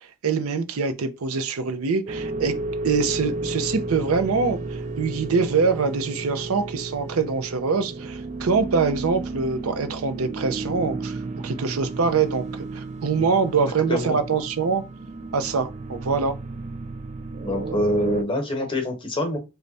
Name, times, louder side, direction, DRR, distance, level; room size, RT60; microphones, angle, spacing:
voice 1, 0.0-2.5 2.8-11.2 11.4-14.8 15.3-16.3, right 5 dB, 85° right, 0.6 m, -24 dB
sound 1, 2.1-18.2, right 3 dB, 35° right, 0.4 m, -33 dB
voice 2, 17.4-19.4, left 1 dB, 25° left, 1.0 m, -25 dB
3.3 x 2.2 x 3.9 m
head